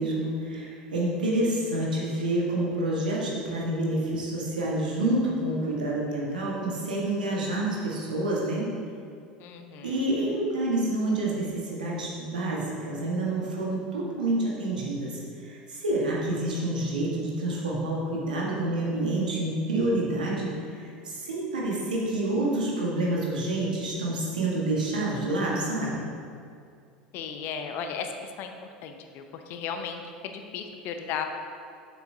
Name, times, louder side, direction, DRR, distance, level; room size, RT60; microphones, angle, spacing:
voice 1, 0.0-8.7 9.8-26.0, right 1 dB, 75° right, -4 dB, 1.5 m, -28 dB
voice 2, 9.4-10.0 27.1-28.1 28.4-31.2, left 7 dB, 50° left, 6 dB, 0.6 m, -35 dB
7.5 x 6.9 x 2.8 m, 2.4 s
figure-of-eight pair, 75°, 4 cm